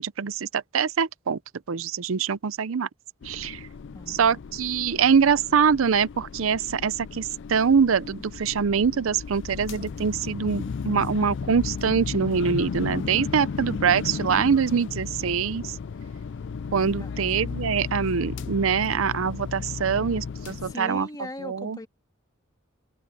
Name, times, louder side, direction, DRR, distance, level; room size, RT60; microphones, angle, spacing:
voice 1, 0.0-1.4 1.7-2.9 3.2-3.6 4.1-15.8 16.7-21.1 21.4-21.8, right 6 dB, 75° right, 0.6 m, -24 dB
sound 1, 3.2-20.8, left 5 dB, 60° left, 0.4 m, -35 dB
voice 2, 3.9-4.4 17.0-17.3 20.6-21.9, left 1 dB, 20° left, 2.1 m, -39 dB
head